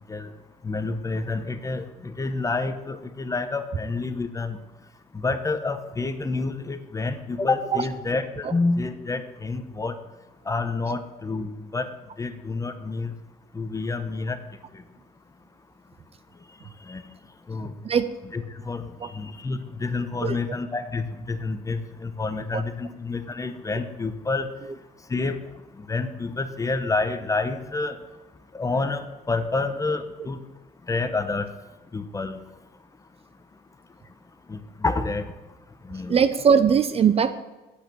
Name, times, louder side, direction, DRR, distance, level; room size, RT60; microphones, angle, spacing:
voice 1, 0.6-4.6 5.1-10.0 10.5-11.9 12.2-13.1 13.5-14.4 16.9-17.0 17.5-17.7 18.3-18.8 19.1-24.5 25.1-25.4 25.9-28.0 28.5-30.4 30.9-31.5 31.9-32.4 34.5-35.2 35.9-36.2, left 3 dB, 20° left, 9 dB, 0.9 m, -28 dB
voice 2, 36.1-37.3, right 7 dB, 35° right, 12 dB, 0.6 m, -20 dB
9.1 x 8.4 x 6.9 m, 1.1 s
cardioid pair, 110°, 17 cm